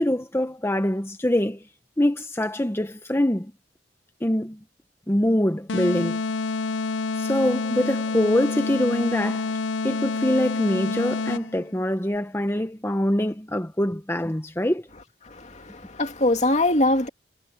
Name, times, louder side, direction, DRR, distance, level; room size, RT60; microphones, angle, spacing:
voice 1, 0.0-1.6 2.0-3.5 4.2-4.6 5.1-6.2 7.2-9.5 9.8-14.9, left 1 dB, 15° left, 0.9 m, -24 dB
sound 1, 5.7-11.7, left 3 dB, 80° left, 0.6 m, -28 dB
voice 2, 15.2-17.1, left 1 dB, 40° left, 2.4 m, -22 dB
head